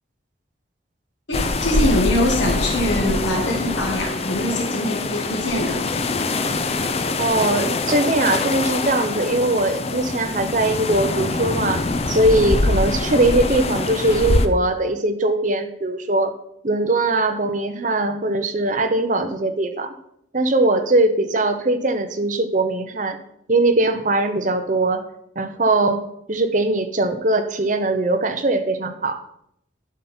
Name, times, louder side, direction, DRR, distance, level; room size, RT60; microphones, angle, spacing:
voice 1, 1.3-5.8, left 1 dB, 70° left, 0 dB, 1.8 m, -23 dB
sound 1, 1.3-14.5, left 3 dB, 30° left, 0.5 m, -24 dB
voice 2, 7.2-11.8 12.1-16.3 16.6-19.9 20.3-23.2 23.5-25.0 25.4-26.0 26.3-29.2, right 2 dB, 40° right, 7 dB, 0.7 m, -20 dB
11.0 x 5.8 x 4.3 m, 0.76 s
head